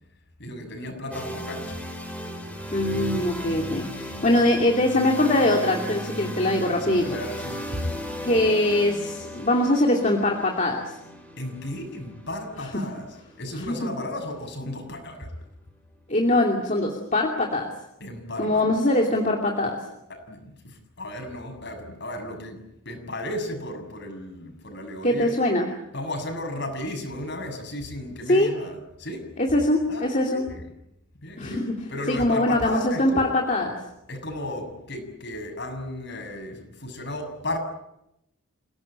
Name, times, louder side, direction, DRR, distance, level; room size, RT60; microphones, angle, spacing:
voice 1, 0.4-1.8 3.1-3.2 6.8-7.9 11.4-13.0 13.4-15.3 18.0-18.6 20.1-25.3 25.9-29.3 29.9-30.7 31.2-31.6 31.9-33.3 34.1-37.6, left 1 dB, 50° left, 7.0 m, -34 dB
sound 1, 1.1-15.0, equal, 5° left, 5.4 m, -36 dB
voice 2, 2.7-7.1 8.2-11.0 12.7-12.9 13.6-13.9 16.1-17.7 18.4-19.8 25.0-25.7 28.3-28.5 29.4-30.4 31.4-31.8 32.1-33.8, left 1 dB, 35° left, 2.7 m, -22 dB
29.0 x 18.0 x 8.8 m
head